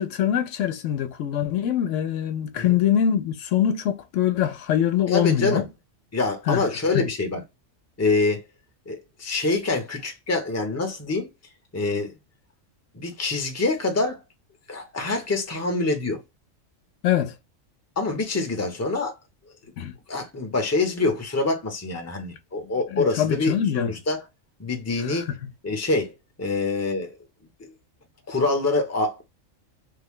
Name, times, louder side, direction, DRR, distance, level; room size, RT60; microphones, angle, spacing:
voice 1, 0.0-5.6 6.5-6.6 6.9-7.1 17.0-17.4 19.8-19.9 22.6-23.9 25.0-25.3, left 10 dB, 75° left, 0.9 m, -24 dB
voice 2, 5.1-5.7 6.1-7.4 8.0-8.4 8.9-11.3 11.7-12.1 12.9-14.2 14.7-16.2 18.0-19.1 20.1-24.2 24.6-25.3 25.6-26.1 26.4-27.2 27.6-27.7 28.3-29.2, left 3 dB, 15° left, 0.7 m, -25 dB
3.2 x 2.2 x 3.5 m
omnidirectional pair, 1.3 m